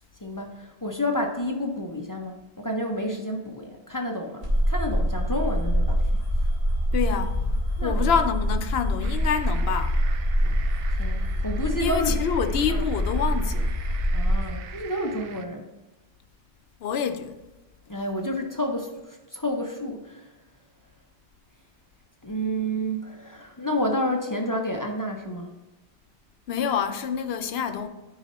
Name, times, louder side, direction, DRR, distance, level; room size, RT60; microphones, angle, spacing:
voice 1, 0.2-6.1 7.8-8.1 11.0-12.2 12.7-12.8 14.1-15.7 17.9-20.3 22.2-25.5, equal, 20° left, 0.6 m, -30 dB
sound 1, 4.4-14.5, equal, 45° right, 2.5 m, -25 dB
voice 2, 6.9-7.5 7.8-10.0 10.4-10.7 11.8-13.8 16.8-17.4 26.5-27.9, left 7 dB, 70° left, 0.8 m, -27 dB
sound 2, 9.0-15.5, right 7 dB, 65° right, 0.8 m, -44 dB
9.5 x 4.1 x 4.2 m
omnidirectional pair, 1.1 m